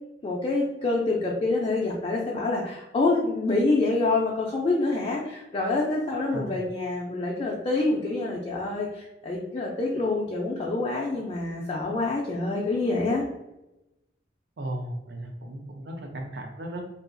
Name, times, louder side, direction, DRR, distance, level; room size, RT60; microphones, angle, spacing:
voice 1, 0.2-13.2, left 2 dB, 30° left, -3 dB, 0.4 m, -26 dB
voice 2, 14.6-16.8, right 1 dB, 70° right, 3 dB, 0.5 m, -35 dB
2.7 x 2.3 x 2.5 m, 0.94 s
head